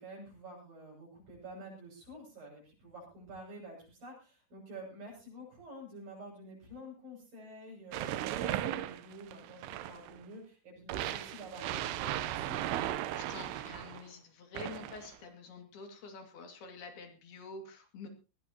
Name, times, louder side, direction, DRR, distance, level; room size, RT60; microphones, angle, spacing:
voice 1, 0.0-12.6, right 1 dB, 60° right, -3 dB, 8.9 m, -49 dB
sound 1, 7.9-10.2 10.9-14.0 14.5-15.2, right 13 dB, 90° right, 3.0 m, -36 dB
voice 2, 13.2-18.1, left 4 dB, 70° left, 4 dB, 4.3 m, -48 dB
20.5 x 16.5 x 3.0 m, 0.32 s
omnidirectional pair, 4.7 m